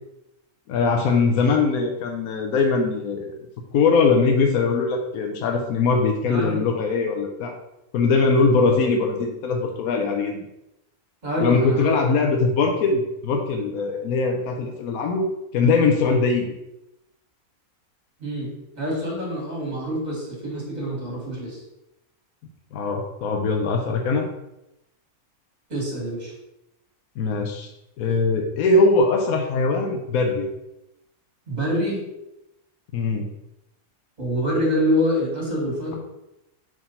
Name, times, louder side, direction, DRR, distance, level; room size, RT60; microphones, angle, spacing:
voice 1, 0.7-3.4 3.7-7.5 7.9-10.4 11.4-15.3 15.5-16.5 22.7-24.3 27.2-27.7 28.0-30.5 32.9-33.3, left 4 dB, 75° left, 2 dB, 1.1 m, -21 dB
voice 2, 6.3-6.6 11.2-11.9 18.2-18.5 18.8-21.6 25.7-26.3 31.5-32.0 34.2-36.0, equal, 30° right, -4 dB, 2.2 m, -25 dB
4.7 x 3.7 x 5.5 m, 0.89 s
omnidirectional pair, 1.5 m